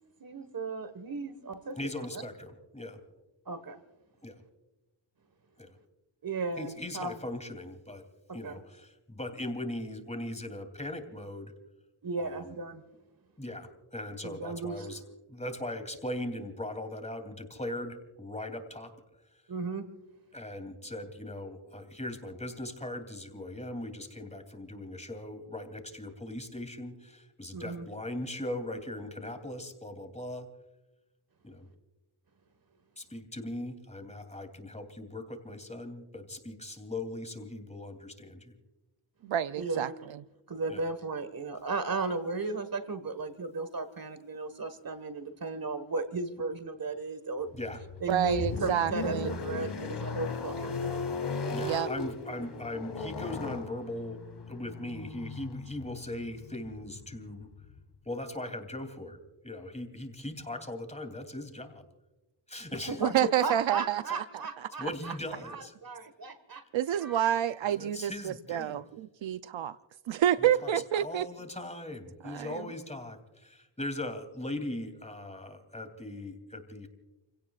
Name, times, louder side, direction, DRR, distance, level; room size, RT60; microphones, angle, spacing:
voice 1, 0.2-1.8 2.1-2.2 3.5-3.8 6.2-7.1 8.3-8.6 12.0-12.8 14.2-14.9 19.5-19.9 27.5-27.8 39.5-39.9 40.5-47.5 48.0-51.1 62.9-65.2 65.4-66.6 67.0-67.3, right 3 dB, 45° right, 11 dB, 1.6 m, -35 dB
voice 2, 1.8-3.0 4.2-4.4 5.6-5.8 6.6-8.0 8.3-11.5 12.2-12.4 13.4-15.0 15.3-18.9 20.3-30.5 31.4-31.7 33.0-38.6 40.7-40.8 47.5-47.8 49.6-49.7 51.5-54.2 54.5-57.5 58.0-59.2 59.4-61.8 62.5-63.0 64.8-65.7 67.8-68.8 70.4-70.7 71.0-76.9, left 1 dB, 15° left, 7 dB, 3.0 m, -39 dB
voice 3, 39.2-39.9 48.1-49.4 51.6-51.9 63.0-64.0 64.6-64.9 66.7-69.8 70.1-71.3 72.2-72.6, right 11 dB, 70° right, 13 dB, 0.6 m, -28 dB
sound 1, 47.5-57.8, left 4 dB, 55° left, 1.9 m, -37 dB
30.0 x 17.0 x 2.4 m, 1.0 s
cardioid pair, 65°, 48 cm